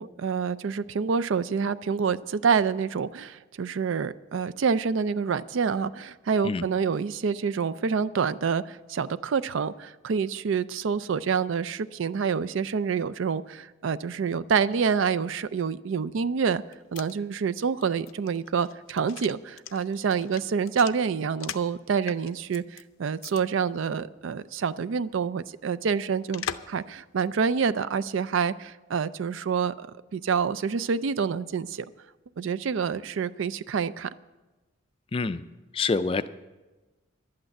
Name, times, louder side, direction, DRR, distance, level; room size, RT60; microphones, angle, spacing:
voice 1, 0.0-16.6 16.9-29.9 30.1-31.9 32.4-34.1, right 6 dB, 70° right, 15 dB, 0.4 m, -27 dB
sound 1, 16.5-21.8 22.1-22.8 23.2-23.4 23.7-23.8 26.3-26.8 27.2-27.3, left 8 dB, 80° left, 0.5 m, -40 dB
voice 2, 35.1-35.4 35.7-36.3, left 4 dB, 25° left, 12 dB, 0.3 m, -26 dB
11.5 x 8.7 x 7.8 m, 1.2 s
head